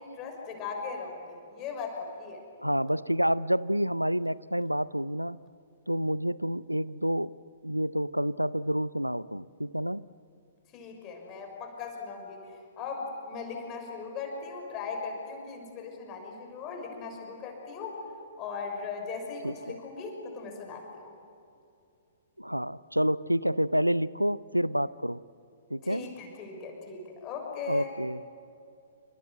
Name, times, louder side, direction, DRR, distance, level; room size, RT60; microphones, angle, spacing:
voice 1, 0.0-2.4 10.7-12.4 12.8-18.0 18.4-21.1 25.8-27.9, left 5 dB, 25° left, 2 dB, 5.9 m, -38 dB
voice 2, 2.6-5.4 5.9-7.3 7.6-10.0 19.4-19.8 22.4-25.2 25.7-26.0 27.7-28.2, equal, 90° right, 20 dB, 0.6 m, -28 dB
28.5 x 26.5 x 8.0 m, 2.6 s
figure-of-eight pair, 115°, 0 cm